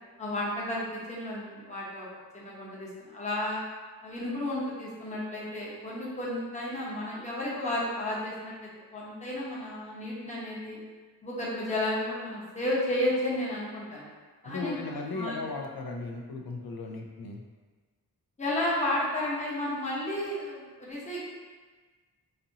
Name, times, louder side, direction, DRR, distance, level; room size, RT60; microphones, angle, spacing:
voice 1, 0.2-2.1 2.3-3.6 4.0-10.8 11.2-14.1 14.4-14.8 15.1-15.5 18.4-21.2, left 1 dB, 20° left, -7 dB, 0.9 m, -32 dB
voice 2, 14.4-17.4, left 3 dB, 70° left, 2 dB, 0.6 m, -36 dB
4.2 x 2.7 x 2.7 m, 1.4 s
wide cardioid pair, 120°, 38 cm